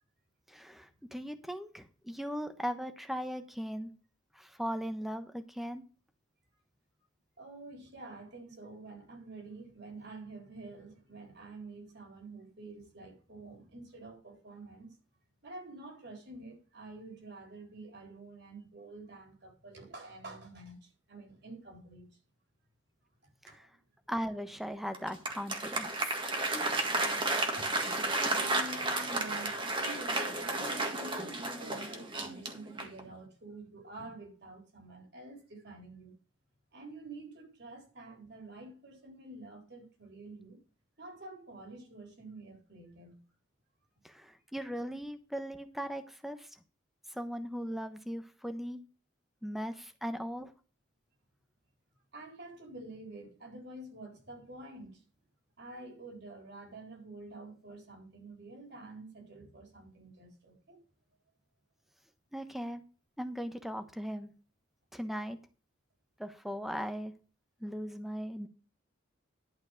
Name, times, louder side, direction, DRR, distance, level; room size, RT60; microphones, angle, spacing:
voice 1, 0.5-3.9 4.3-5.8 23.4-23.7 24.1-26.1 44.0-46.5 47.1-48.8 49.4-50.5 62.3-62.8 63.2-64.3 64.9-65.4 66.2-67.1 67.6-68.5, equal, ahead, 1.0 m, -38 dB
voice 2, 7.4-15.0 15.4-22.2 23.5-23.7 27.5-27.7 28.3-36.1 36.7-40.6 41.0-43.2 52.1-55.0 55.6-60.8, right 2 dB, 55° right, 4.0 m, -48 dB
Applause, 24.9-33.1, right 2 dB, 25° right, 1.7 m, -33 dB
11.5 x 5.1 x 6.5 m
head